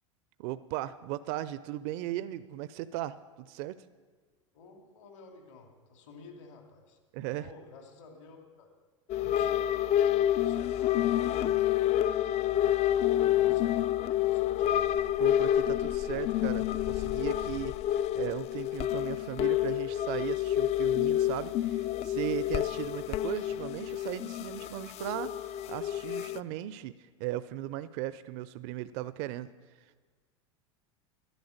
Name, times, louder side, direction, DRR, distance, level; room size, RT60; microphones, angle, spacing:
voice 1, 0.4-3.8 7.1-7.5 9.2-9.3 15.2-26.9 27.2-29.5, right 14 dB, 55° right, 15 dB, 0.6 m, -37 dB
voice 2, 4.5-7.0 7.3-8.7 9.2-11.6 12.2-14.8, left 3 dB, 70° left, 2 dB, 2.8 m, -52 dB
sound 1, 9.1-26.4, left 12 dB, 40° left, 0.5 m, -28 dB
12.0 x 10.5 x 6.6 m, 1.5 s
hypercardioid pair, 95°, 16 cm